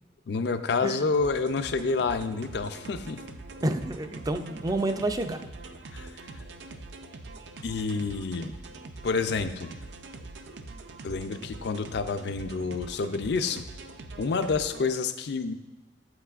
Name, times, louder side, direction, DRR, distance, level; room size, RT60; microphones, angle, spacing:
voice 1, 0.3-3.2 5.9-6.1 7.6-8.6 9.0-9.7 11.0-13.6 14.2-15.5, left 4 dB, 65° left, 9 dB, 0.4 m, -28 dB
sound 1, 1.1-14.9, right 2 dB, 70° right, 0.5 m, -43 dB
voice 2, 3.6-5.4, right 2 dB, 20° right, 8 dB, 0.4 m, -29 dB
8.6 x 8.0 x 2.4 m, 1.1 s
head